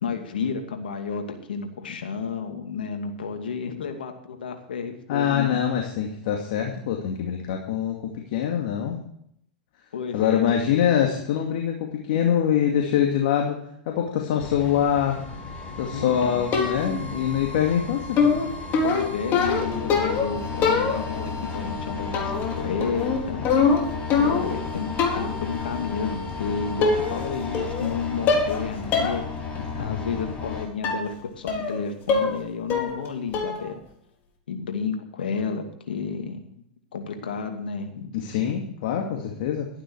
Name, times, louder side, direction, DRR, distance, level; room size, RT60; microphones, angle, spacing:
voice 1, 0.0-5.6 9.9-10.7 15.9-16.5 18.8-23.5 24.2-24.9 25.1-29.2 29.8-33.7 34.5-36.6 36.9-38.1, left 5 dB, 85° left, 5 dB, 2.5 m, -31 dB
voice 2, 5.1-9.0 10.1-13.6 13.9-15.2 15.8-18.3 29.7-30.0 38.1-39.7, left 9 dB, 65° left, 1 dB, 2.4 m, -24 dB
sound 1, 14.4-30.7, left 4 dB, 25° left, 5.2 m, -34 dB
sound 2, 16.5-17.1 18.2-20.3 20.6-21.3 22.1-22.5 22.8-24.6 25.0-25.4 26.3-26.4 26.8-27.3 27.5-27.9 28.3-28.6 28.9-29.2 29.6-29.7 30.8-31.1 31.5-31.8 32.1-32.4 32.7-33.1 33.3-33.7, left 5 dB, 40° left, 4.2 m, -23 dB
13.0 x 11.5 x 4.8 m, 0.70 s
hypercardioid pair, 110°, 5 cm